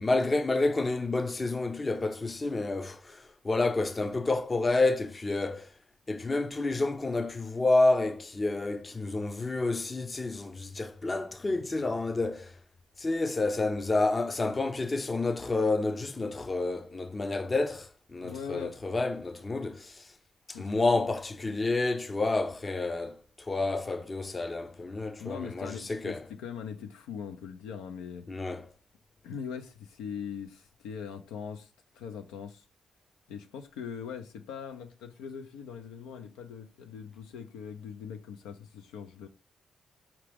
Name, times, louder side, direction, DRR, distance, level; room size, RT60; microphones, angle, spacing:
voice 1, 0.0-5.7 6.1-12.5 13.0-20.1 20.5-26.2 28.3-28.6, left 2 dB, 35° left, 0.6 m, -29 dB
voice 2, 18.2-18.8 20.5-20.7 25.2-28.3 29.2-32.6 33.3-39.3, left 7 dB, 85° left, 0.4 m, -41 dB
4.9 x 2.9 x 3.4 m
hypercardioid pair, 45°, 0 cm